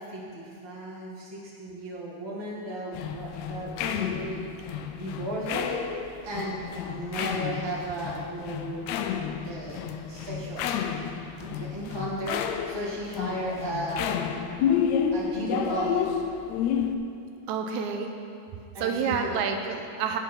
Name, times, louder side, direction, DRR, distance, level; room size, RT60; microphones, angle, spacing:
voice 1, 0.0-4.4 4.9-5.7 6.2-6.6 6.8-9.0 9.4-9.8 10.1-10.8 11.4-14.2 15.1-15.9 18.7-19.3, right 1 dB, 25° right, -6 dB, 0.5 m, -35 dB
sound 1, 2.9-16.9, left 8 dB, 90° left, 1.5 m, -31 dB
voice 2, 17.5-18.1 18.8-20.2, right 6 dB, 80° right, 5 dB, 1.8 m, -28 dB
9.0 x 7.0 x 5.9 m, 2.6 s
omnidirectional pair, 3.7 m